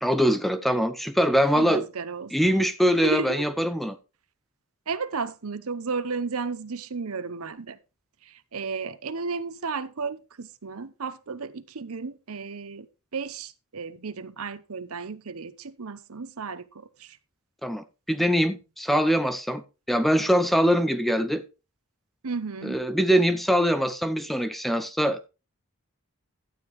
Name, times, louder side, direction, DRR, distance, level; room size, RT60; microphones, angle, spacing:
voice 1, 0.0-1.8 2.3-4.0 17.6-19.6 19.9-21.4 22.6-25.3, equal, ahead, 0.6 m, -23 dB
voice 2, 1.5-2.5 3.0-3.5 4.9-7.8 8.2-12.9 13.1-17.2 22.2-22.8, right 4 dB, 75° right, 0.8 m, -33 dB
12.0 x 8.9 x 3.1 m
head